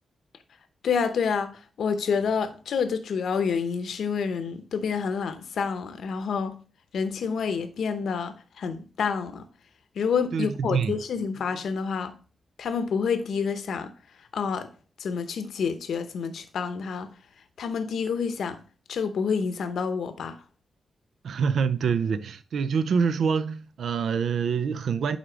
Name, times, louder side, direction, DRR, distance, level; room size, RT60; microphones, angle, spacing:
voice 1, 0.8-6.6 6.9-9.5 10.0-12.1 12.6-13.9 14.2-14.7 15.0-17.1 17.6-18.6 18.9-20.4, left 6 dB, 85° left, 0.8 m, -28 dB
voice 2, 10.3-10.9 21.2-25.2, right 6 dB, 80° right, 0.4 m, -26 dB
9.3 x 3.7 x 5.0 m
wide cardioid pair, 110°, 0 cm